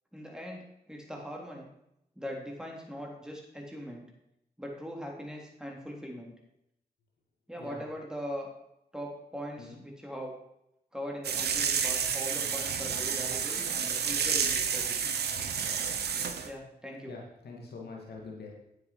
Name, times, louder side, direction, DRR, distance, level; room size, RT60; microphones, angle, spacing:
voice 1, 0.1-1.7 2.2-4.1 4.6-6.3 7.5-8.5 8.9-10.4 10.9-14.8 16.0-16.1 16.4-17.2, equal, 5° right, -1 dB, 3.5 m, -41 dB
sound 1, 11.2-16.5, right 7 dB, 90° right, 0.9 m, -30 dB
voice 2, 17.1-18.5, left 3 dB, 85° left, -2 dB, 2.3 m, -44 dB
9.4 x 7.9 x 4.8 m, 0.82 s
cardioid pair, 45°, 16 cm